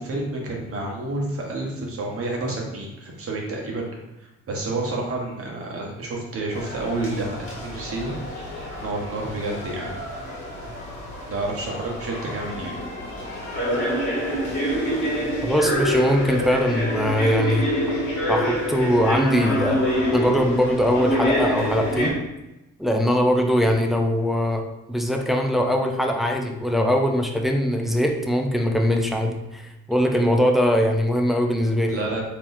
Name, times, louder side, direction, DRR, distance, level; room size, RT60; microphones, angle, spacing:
voice 1, 0.0-3.9 4.2-8.2 8.8-9.9 11.3-12.7 30.1-30.2 31.9-32.2, right 2 dB, 50° right, -1 dB, 1.1 m, -29 dB
sound 1, 6.5-22.1, equal, 40° left, 1.5 m, -27 dB
voice 2, 15.4-17.7 18.3-22.2 22.8-32.0, equal, ahead, 2 dB, 0.4 m, -21 dB
3.7 x 2.9 x 2.6 m, 0.97 s
cardioid pair, 90°, 30 cm